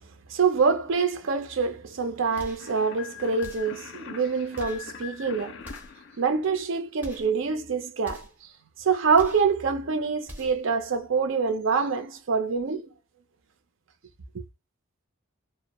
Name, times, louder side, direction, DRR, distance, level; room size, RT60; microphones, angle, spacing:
voice 1, 0.3-5.6 6.2-8.3 8.8-12.9 14.3-14.4, right 5 dB, 70° right, 0.5 m, -25 dB
sound 1, 2.3-2.7 3.4-3.8 4.5-4.9 5.6-6.0 7.0-7.4 8.0-8.4 9.1-9.5 10.2-10.7, equal, 10° right, 0.5 m, -44 dB
sound 2, 2.6-7.1, left 7 dB, 55° left, 0.4 m, -43 dB
2.1 x 2.0 x 2.8 m
head